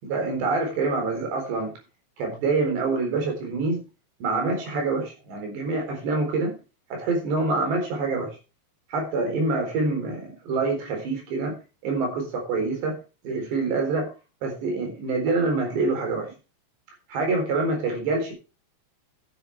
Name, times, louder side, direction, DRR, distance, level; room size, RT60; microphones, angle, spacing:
voice 1, 0.0-1.7 2.2-3.8 4.2-6.5 6.9-8.3 8.9-11.6 11.8-12.9 13.2-14.1 14.4-16.3 17.1-18.3, right 3 dB, 70° right, 3 dB, 6.1 m, -26 dB
13.5 x 8.9 x 3.5 m, 0.31 s
omnidirectional pair, 5.1 m